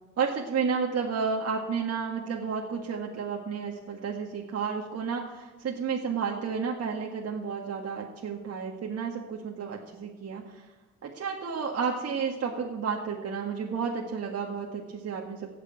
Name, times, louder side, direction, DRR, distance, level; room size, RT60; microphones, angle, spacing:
voice 1, 0.2-10.7 11.0-15.5, right 6 dB, 55° right, -1 dB, 1.8 m, -31 dB
16.5 x 6.7 x 9.0 m, 1.1 s
cardioid pair, 90°, 30 cm